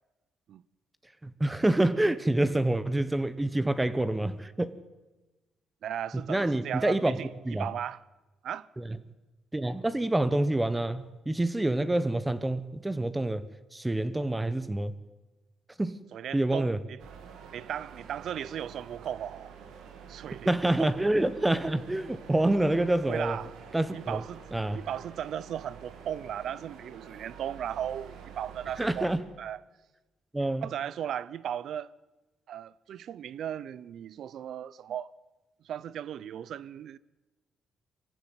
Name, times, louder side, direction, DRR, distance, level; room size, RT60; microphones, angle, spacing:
voice 1, 1.2-4.7 6.1-7.7 8.8-9.0 9.5-14.9 15.8-16.0 16.3-16.8 20.4-23.4 23.7-24.2 24.5-24.8 28.8-29.2 30.3-30.7, right 1 dB, 15° right, 1.1 m, -27 dB
voice 2, 5.8-8.0 8.4-8.7 16.1-17.0 17.5-19.5 20.1-20.5 20.8-20.9 23.1-23.5 23.9-24.4 24.7-29.1 29.4-29.6 30.6-31.9 32.5-35.1 35.6-37.0, right 10 dB, 70° right, 0.7 m, -36 dB
sound 1, 17.0-29.2, right 7 dB, 85° right, 2.8 m, -48 dB
23.5 x 16.0 x 9.8 m
cardioid pair, 90°, 0 cm